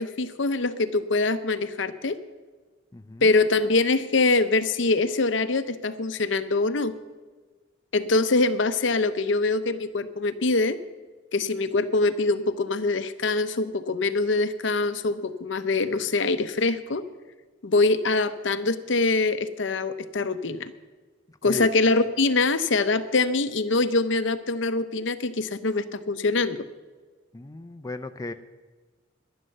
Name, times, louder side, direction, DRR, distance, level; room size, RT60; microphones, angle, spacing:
voice 1, 0.0-2.2 3.2-6.9 7.9-10.8 11.3-17.0 17.6-20.7 21.4-26.6, left 3 dB, 70° left, 12 dB, 0.7 m, -24 dB
voice 2, 2.9-3.2 21.5-21.7 27.3-28.3, left 2 dB, 20° left, 8 dB, 0.4 m, -35 dB
11.0 x 11.0 x 6.6 m, 1.4 s
head